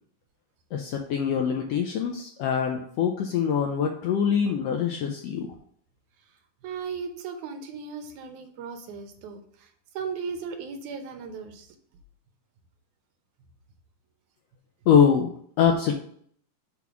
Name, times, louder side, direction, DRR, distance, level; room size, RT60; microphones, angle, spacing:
voice 1, 0.7-5.5 14.9-15.3 15.6-15.9, left 7 dB, 80° left, 2 dB, 1.5 m, -23 dB
voice 2, 6.6-11.8, right 5 dB, 80° right, 5 dB, 2.2 m, -37 dB
5.9 x 3.6 x 5.7 m, 0.62 s
omnidirectional pair, 3.5 m